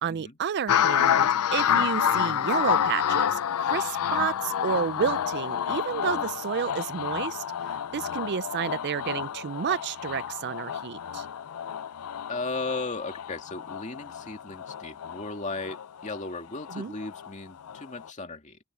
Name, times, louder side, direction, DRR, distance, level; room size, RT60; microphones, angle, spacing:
voice 1, 0.0-11.3 16.7-16.9, right 7 dB, 50° right, 0.4 m, -31 dB
sound 1, 0.7-17.3 17.7-18.1, left 9 dB, 80° left, 0.4 m, -29 dB
voice 2, 12.3-18.6, left 3 dB, 35° left, 2.4 m, -36 dB
open air
head